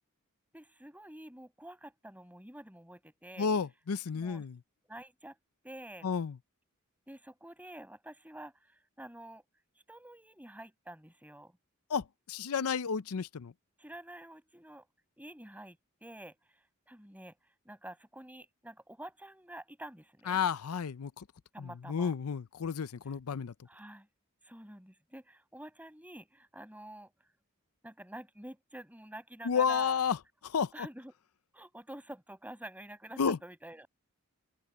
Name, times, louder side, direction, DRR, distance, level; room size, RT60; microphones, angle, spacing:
voice 1, 0.5-3.5 4.1-4.4 4.8-5.4 5.6-6.1 7.1-8.5 9.0-9.4 9.9-11.5 13.8-14.9 15.2-16.4 16.9-17.4 17.6-20.4 21.5-22.1 23.6-24.1 24.4-27.1 27.8-30.0 30.7-31.1 31.5-33.9, right 1 dB, 5° right, 8.0 m, -48 dB
voice 2, 3.4-4.6 6.0-6.3 11.9-13.5 20.3-21.2 21.6-23.5 29.4-30.2 30.5-30.9 33.2-33.4, left 6 dB, 90° left, 0.5 m, -31 dB
open air
head